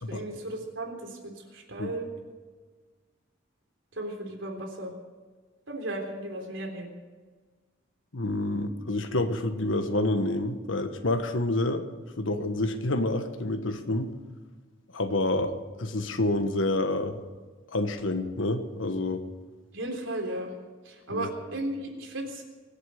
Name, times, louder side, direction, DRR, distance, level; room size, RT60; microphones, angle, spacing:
voice 1, 0.1-2.1 4.0-4.9 5.7-6.9 19.7-20.5 20.9-22.4, right 1 dB, 80° right, 2 dB, 3.7 m, -35 dB
voice 2, 8.1-11.8 12.2-14.1 14.9-15.5 15.8-17.2 17.7-19.2 21.1-21.3, left 2 dB, 85° left, 8 dB, 1.4 m, -28 dB
24.5 x 8.3 x 6.5 m, 1.4 s
head